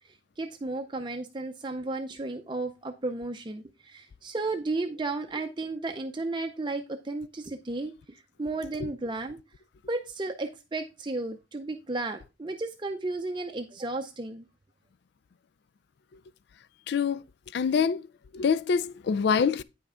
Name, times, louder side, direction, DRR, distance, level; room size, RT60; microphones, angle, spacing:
voice 1, 0.0-9.4 9.9-14.4, right 2 dB, 25° right, 0.5 m, -34 dB
voice 2, 16.9-17.2 17.5-18.1 18.3-19.6, left 6 dB, 55° left, 0.3 m, -25 dB
9.4 x 5.5 x 3.7 m
head